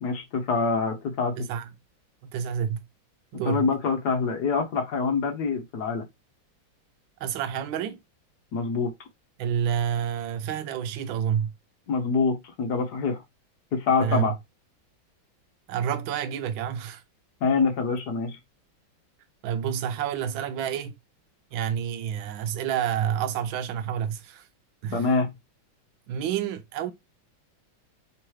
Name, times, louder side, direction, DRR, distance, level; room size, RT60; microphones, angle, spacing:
voice 1, 0.0-1.3 3.4-6.0 8.5-8.9 11.9-13.2 13.7-14.3 17.4-18.4 24.9-25.3, left 4 dB, 60° left, 1.3 m, -25 dB
voice 2, 1.4-1.7 2.3-2.8 3.3-3.7 7.2-8.0 9.4-11.5 14.0-14.2 15.7-17.0 19.4-20.9 21.5-24.5 24.8-25.1 26.1-26.9, right 9 dB, 80° right, 1.4 m, -29 dB
3.7 x 3.0 x 4.6 m
omnidirectional pair, 2.2 m